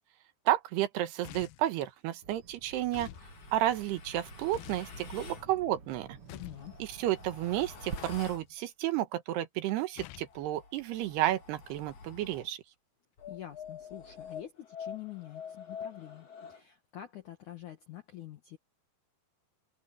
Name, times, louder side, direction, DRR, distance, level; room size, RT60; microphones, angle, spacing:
voice 1, 0.5-3.1 3.5-6.2 6.8-12.6, right 14 dB, 75° right, 3.1 m, -31 dB
sound 1, 1.2-1.7 2.9-3.3 4.5-4.9 6.3-6.7 8.0-8.4 10.0-10.3, left 16 dB, 85° left, 2.2 m, -46 dB
Bird vocalization bird call bird song, 2.2-8.0, right 4 dB, 40° right, 2.3 m, -49 dB
sound 2, 3.1-5.5 6.5-8.5 10.1-12.5 13.2-16.6, left 6 dB, 40° left, 3.6 m, -47 dB
voice 2, 6.3-6.8 13.3-18.6, left 13 dB, 60° left, 2.2 m, -46 dB
omnidirectional pair, 5.0 m